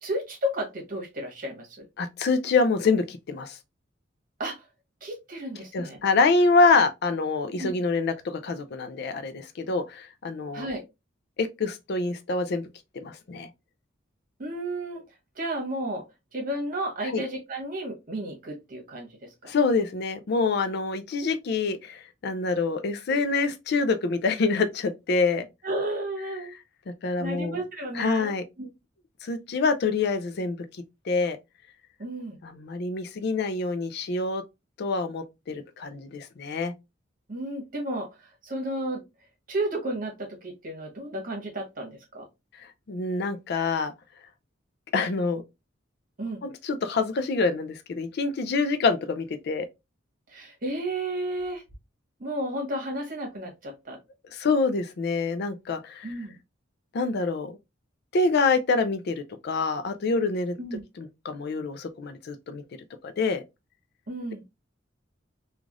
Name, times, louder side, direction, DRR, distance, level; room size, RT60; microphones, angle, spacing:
voice 1, 0.0-1.9 4.4-4.6 5.0-6.0 7.6-7.7 10.5-10.8 14.4-15.0 15.3-16.0 16.3-19.5 25.6-26.5 27.2-28.7 32.0-32.4 37.3-39.0 39.5-42.3 46.2-46.4 50.3-51.6 52.2-54.0 56.0-56.4 60.6-60.8 64.1-64.4, right 1 dB, 50° right, 1.2 m, -32 dB
voice 2, 2.0-3.6 5.7-10.7 11.4-12.7 12.9-13.5 17.0-17.2 19.4-25.5 27.0-27.6 27.9-28.4 29.2-31.4 32.4-34.4 34.8-36.7 42.6-43.9 44.9-45.4 46.4-49.7 54.3-56.1 56.9-57.5 58.1-60.6 61.0-62.6 63.0-63.4, left 3 dB, 60° left, 0.4 m, -26 dB
3.2 x 2.4 x 2.4 m
head